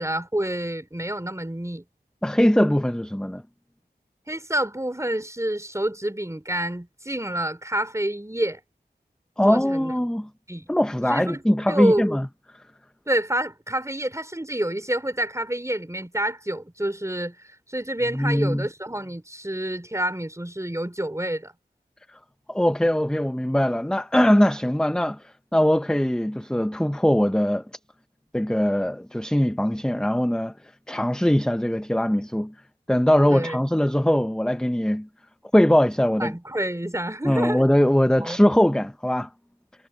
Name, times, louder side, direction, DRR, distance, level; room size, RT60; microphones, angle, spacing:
voice 1, 0.0-1.8 4.3-8.6 9.4-9.9 10.5-10.7 11.1-12.1 13.1-17.4 17.7-21.5 33.3-33.6 36.2-37.6 38.2-38.4, right 1 dB, 15° right, 5.6 m, -28 dB
voice 2, 2.2-3.4 9.4-10.3 10.7-12.3 18.1-18.7 22.5-27.6 28.3-30.5 30.9-32.5 32.9-35.1 35.5-36.3 37.2-39.3, equal, 5° left, 1.1 m, -21 dB
cardioid pair, 40°, 18 cm